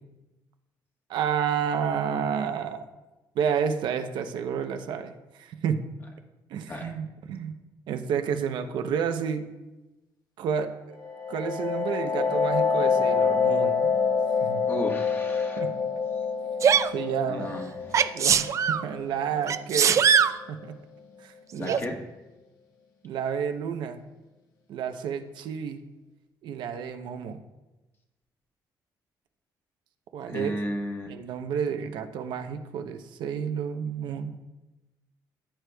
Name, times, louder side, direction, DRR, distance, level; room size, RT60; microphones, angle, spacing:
voice 1, 1.1-2.8 3.4-5.8 6.5-7.5 7.9-9.5 10.4-11.0 11.3-13.9 14.4-14.6 15.6-15.7 16.9-17.6 18.1-20.1 20.5-20.7 21.2-21.8 23.0-24.0 24.7-25.8 26.4-27.4 30.1-30.5 31.1-34.3, right 7 dB, 80° right, 7 dB, 0.7 m, -30 dB
sound 1, 11.0-20.5, left 5 dB, 80° left, 1.5 m, -27 dB
voice 2, 14.7-15.6 17.3-18.1 21.6-22.0 30.3-31.1, equal, 30° left, 2 dB, 1.4 m, -34 dB
Sneeze, 16.6-16.9 17.9-18.8 19.5-20.4 21.7-21.8, right 7 dB, 40° right, 0.3 m, -21 dB
14.5 x 7.7 x 2.3 m, 1.1 s
cardioid pair, 130°, 8 cm